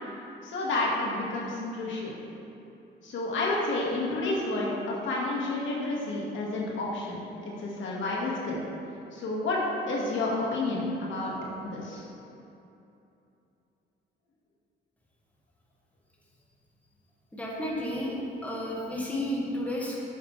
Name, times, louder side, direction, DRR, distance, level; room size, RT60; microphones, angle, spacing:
voice 1, 0.4-2.2 3.0-8.6 9.1-11.3 11.6-12.0, left 2 dB, 75° left, -4 dB, 1.9 m, -30 dB
voice 2, 17.3-18.2 18.4-20.0, left 1 dB, 5° left, -4 dB, 1.8 m, -32 dB
9.9 x 7.9 x 3.3 m, 2.8 s
cardioid pair, 90°, 20 cm